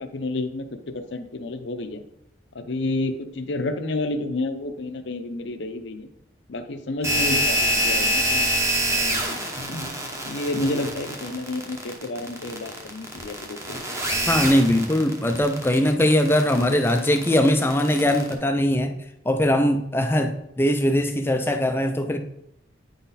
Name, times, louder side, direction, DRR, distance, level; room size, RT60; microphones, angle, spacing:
voice 1, 0.0-2.0 2.5-6.1 6.5-8.5 8.9-9.4 9.7-9.9 10.2-13.8, left 2 dB, 65° left, 8 dB, 0.6 m, -30 dB
sound 1, 7.0-18.3, equal, 15° right, 0.9 m, -26 dB
voice 2, 14.3-18.9 19.3-22.2, left 1 dB, 10° left, 6 dB, 0.4 m, -21 dB
9.0 x 4.0 x 4.1 m, 0.79 s
head